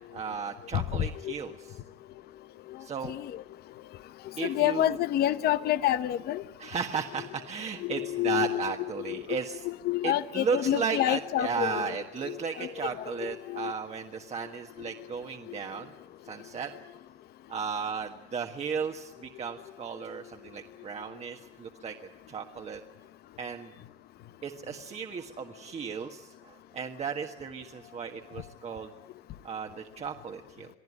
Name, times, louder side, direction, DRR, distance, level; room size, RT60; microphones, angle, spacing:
voice 1, 0.1-1.8 2.8-3.1 4.4-5.0 6.6-9.7 10.0-15.9 16.2-16.7 17.5-21.9 22.3-22.8 23.4-23.7 24.4-28.9 29.4-30.7, right 6 dB, 40° right, 1.5 m, -35 dB
voice 2, 4.4-6.4 7.8-8.6 9.1-9.2 9.6-11.9 12.2-12.7 13.2-13.7, left 13 dB, 70° left, 0.9 m, -28 dB
24.0 x 14.5 x 9.8 m
cardioid pair, 110°, 17 cm